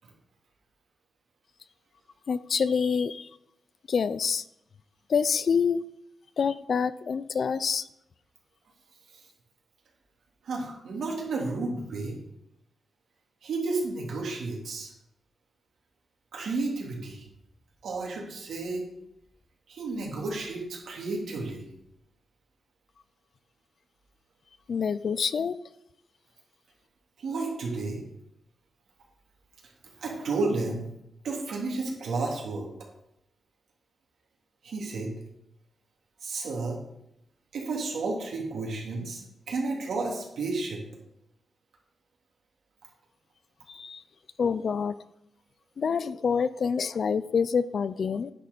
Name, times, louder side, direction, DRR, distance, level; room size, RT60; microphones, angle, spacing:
voice 1, 2.3-3.3 3.9-4.4 5.1-5.8 6.4-7.8 24.7-25.5 43.7-44.0 44.4-45.0 45.8-48.3, left 6 dB, 55° left, 15 dB, 0.4 m, -26 dB
voice 2, 10.4-12.2 13.4-14.9 16.3-17.3 17.8-18.9 19.7-21.7 27.2-28.0 30.0-30.9 31.2-32.7 34.6-35.1 36.2-36.8 37.5-40.8, right 3 dB, 80° right, -1 dB, 2.9 m, -32 dB
9.9 x 6.5 x 5.4 m, 0.81 s
wide cardioid pair, 130°, 0 cm